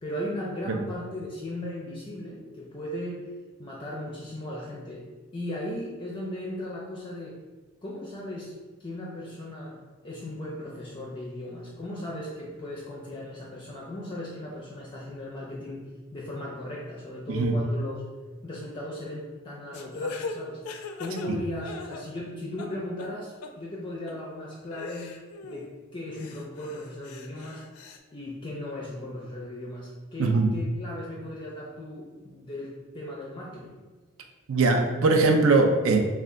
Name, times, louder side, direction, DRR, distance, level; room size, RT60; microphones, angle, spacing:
voice 1, 0.0-3.3 3.6-5.1 5.3-7.4 7.8-8.5 8.8-9.8 10.0-15.8 16.1-18.0 18.4-25.2 25.4-27.6 28.1-33.8, left 1 dB, 25° left, -4 dB, 0.5 m, -37 dB
sound 1, 19.7-22.3 22.6-23.1 23.4-23.5 24.1-24.2 24.7-25.7 26.1-28.0, left 4 dB, 90° left, 0.4 m, -39 dB
voice 2, 34.5-36.0, right 3 dB, 70° right, 4 dB, 0.5 m, -21 dB
3.3 x 2.3 x 3.7 m, 1.3 s
head